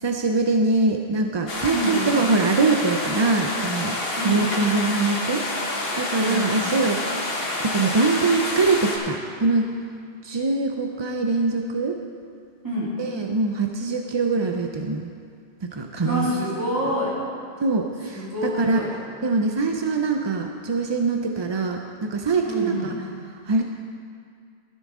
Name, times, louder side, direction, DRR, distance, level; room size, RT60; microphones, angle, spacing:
voice 1, 0.0-4.0 4.2-7.0 7.6-9.8 10.2-12.0 13.0-15.1 15.6-16.4 17.6-18.8 19.2-22.9 23.5-23.6, right 3 dB, 40° right, 3 dB, 0.4 m, -23 dB
sound 1, 1.5-9.0, left 2 dB, 60° left, 1.6 m, -28 dB
voice 2, 1.7-2.1 4.2-4.5 6.2-6.6 12.6-12.9 16.0-17.2 18.0-18.9 22.4-22.9, equal, 20° right, -8 dB, 3.2 m, -27 dB
13.5 x 11.0 x 3.7 m, 2.2 s
omnidirectional pair, 1.1 m